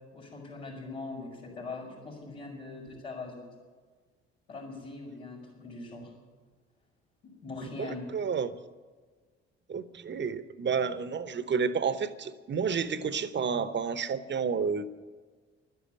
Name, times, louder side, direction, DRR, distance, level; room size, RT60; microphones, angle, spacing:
voice 1, 0.1-3.5 4.5-6.1 7.2-8.1, left 3 dB, 90° left, -6 dB, 5.3 m, -41 dB
voice 2, 7.8-8.5 9.7-14.9, right 6 dB, 35° right, 14 dB, 1.0 m, -30 dB
12.0 x 10.5 x 9.9 m, 1.4 s
hypercardioid pair, 50°, 32 cm